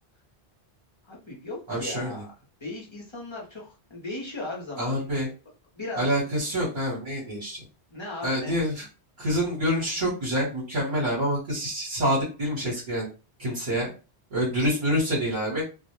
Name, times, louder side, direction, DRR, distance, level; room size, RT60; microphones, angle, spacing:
voice 1, 1.0-2.3 2.6-5.3 5.7-6.1 7.9-8.6, left 2 dB, 30° left, -3 dB, 0.6 m, -37 dB
voice 2, 1.7-2.1 4.8-5.3 6.0-7.6 8.2-8.8 9.2-13.1 13.4-13.9 14.3-15.6, equal, 50° right, -5 dB, 1.0 m, -27 dB
2.2 x 2.0 x 2.8 m, 0.32 s
omnidirectional pair, 1.1 m